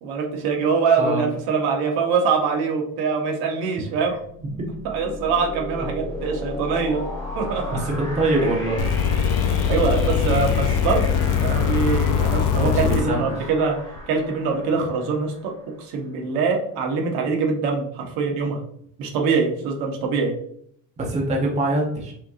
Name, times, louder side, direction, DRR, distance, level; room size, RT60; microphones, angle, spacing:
voice 1, 0.0-4.1 4.8-7.0 7.3-7.8 9.7-11.1 11.4-13.8 14.1-15.5 15.8-18.6 19.0-20.3, right 5 dB, 70° right, 1 dB, 1.1 m, -23 dB
sound 1, 4.1-15.8, left 2 dB, 5° left, 1.3 m, -35 dB
voice 2, 7.7-8.8 12.6-13.4 21.0-22.1, right 2 dB, 15° right, 0 dB, 0.7 m, -24 dB
sound 2, 8.8-13.0 14.0-14.1, left 7 dB, 50° left, 0.5 m, -21 dB
5.6 x 2.8 x 2.4 m, 0.66 s
cardioid pair, 150°, 40 cm